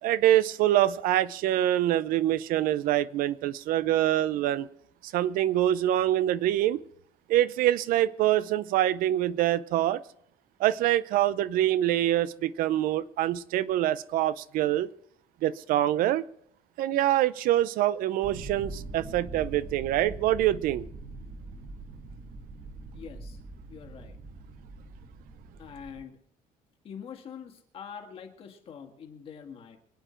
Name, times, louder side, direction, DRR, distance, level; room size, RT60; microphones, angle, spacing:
voice 1, 0.0-4.7 5.0-6.8 7.3-10.0 10.6-14.9 15.4-16.3 16.8-20.8, right 13 dB, 75° right, 0.6 m, -25 dB
sound 1, 18.2-26.0, right 2 dB, 40° right, 2.2 m, -43 dB
voice 2, 22.9-23.4 23.7-24.2 25.6-26.2 26.8-29.8, left 7 dB, 40° left, 1.8 m, -44 dB
25.0 x 9.1 x 4.4 m
cardioid pair, 180°, 15 cm